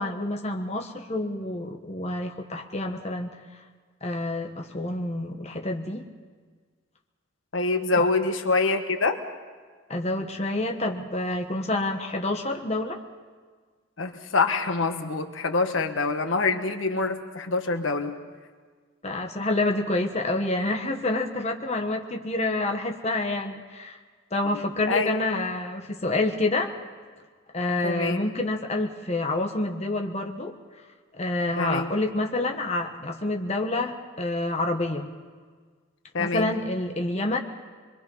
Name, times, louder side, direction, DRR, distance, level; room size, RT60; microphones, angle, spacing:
voice 1, 0.0-3.3 4.0-6.1 8.0-8.1 9.9-13.0 19.0-24.0 24.3-26.7 27.5-30.5 31.1-35.1 36.2-37.4, left 2 dB, 35° left, 3 dB, 1.3 m, -28 dB
voice 2, 7.5-9.2 14.0-18.2 24.9-25.2 27.8-28.3 31.6-31.9 36.1-36.5, left 3 dB, 80° left, 6 dB, 1.4 m, -25 dB
24.0 x 23.0 x 5.5 m, 1.5 s
head